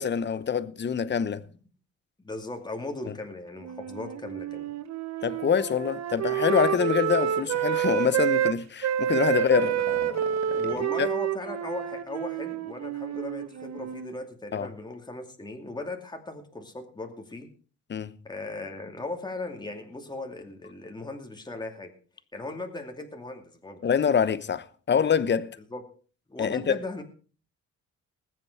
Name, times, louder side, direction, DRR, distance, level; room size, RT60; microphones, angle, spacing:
voice 1, 0.0-1.4 3.1-3.2 5.2-10.6 11.0-11.1 14.5-14.7 17.9-18.2 23.8-25.6 26.4-26.8, left 7 dB, 35° left, 0.9 m, -26 dB
voice 2, 2.2-4.7 9.6-9.7 10.5-17.5 18.2-21.9 22.3-23.8 25.7-25.8 26.3-27.0, left 2 dB, 15° left, 2.4 m, -38 dB
Wind instrument woodwind instrument, 3.6-8.5 8.8-14.1, right 10 dB, 60° right, 1.1 m, -28 dB
20.5 x 7.6 x 4.6 m
cardioid pair, 90°, 30 cm